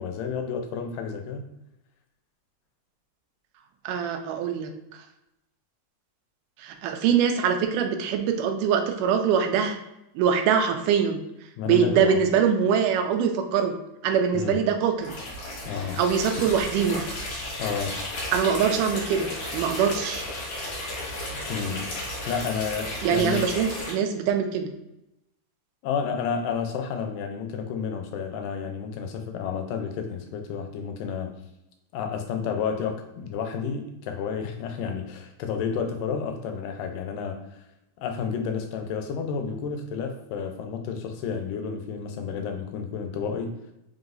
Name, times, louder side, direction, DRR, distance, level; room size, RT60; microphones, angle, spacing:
voice 1, 0.0-1.5 11.6-12.2 14.3-14.6 15.7-16.0 17.6-18.0 21.5-21.9 22.3-23.5 25.8-31.3 31.9-37.4 38.0-43.5, left 6 dB, 85° left, 5 dB, 2.3 m, -31 dB
voice 2, 3.9-4.7 6.6-9.8 10.2-11.2 11.6-13.7 14.0-15.1 16.0-17.0 18.3-19.3 19.5-20.2 23.0-24.7, right 7 dB, 80° right, 5 dB, 2.1 m, -23 dB
sound 1, 15.0-23.9, left 1 dB, 55° left, 2.3 m, -34 dB
5.3 x 3.9 x 2.6 m, 0.87 s
omnidirectional pair, 3.8 m